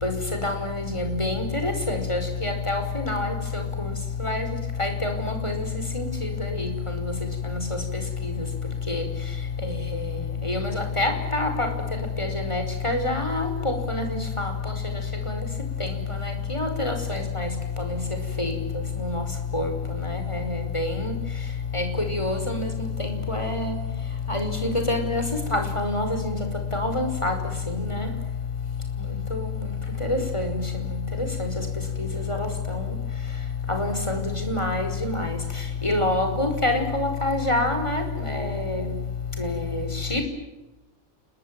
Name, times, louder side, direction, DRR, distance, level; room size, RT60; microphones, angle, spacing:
voice 1, 0.0-3.6 4.2-4.5 4.8-5.7 5.9-6.7 8.9-9.0 9.6-9.7 10.4-11.7 12.2-14.7 15.3-15.4 15.8-15.9 16.2-17.5 18.4-18.5 19.0-19.2 19.5-19.7 20.0-20.4 20.7-21.1 21.7-22.7 23.0-23.7 24.3-25.2 25.5-26.4 26.7-27.3 27.7-28.1 29.3-29.4 30.0-30.6 31.4-31.5 32.3-32.8 33.7-34.2 34.5-35.4 35.8-38.8 39.4-39.8 40.1-40.2, left 2 dB, 20° left, 5 dB, 5.5 m, -26 dB
30.0 x 21.5 x 9.2 m, 0.96 s
omnidirectional pair, 1.4 m